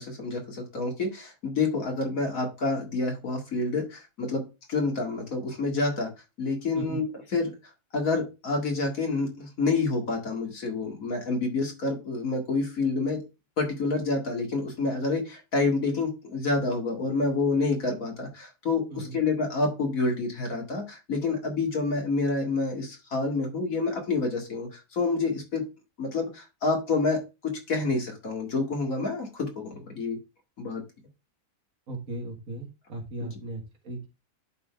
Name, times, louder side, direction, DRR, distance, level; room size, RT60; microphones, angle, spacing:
voice 1, 0.0-6.1 6.4-7.5 7.9-13.2 13.6-25.6 26.0-30.2 30.6-30.8 33.2-33.3, left 3 dB, 75° left, 1 dB, 2.5 m, -28 dB
voice 2, 31.9-34.1, right 2 dB, 75° right, 1 dB, 2.3 m, -37 dB
11.0 x 3.8 x 3.4 m, 0.26 s
omnidirectional pair, 1.4 m